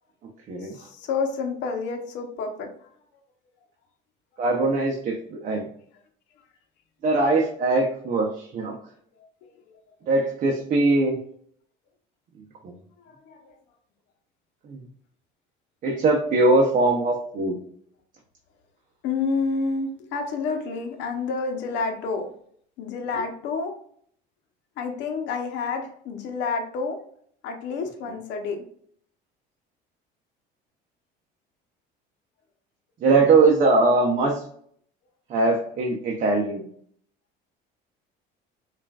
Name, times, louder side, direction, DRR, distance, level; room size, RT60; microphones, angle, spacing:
voice 1, 0.6-2.7 9.4-9.5 13.1-13.5 19.0-22.3 22.8-23.8 24.8-27.0 27.4-28.6, left 4 dB, 70° left, 5 dB, 0.8 m, -29 dB
voice 2, 4.4-5.7 7.0-8.8 10.1-11.2 12.6-12.7 14.6-14.8 15.8-17.6 33.0-34.4 35.3-36.6, right 3 dB, 45° right, -1 dB, 0.7 m, -21 dB
5.5 x 2.5 x 2.3 m, 0.63 s
cardioid pair, 130°, 19 cm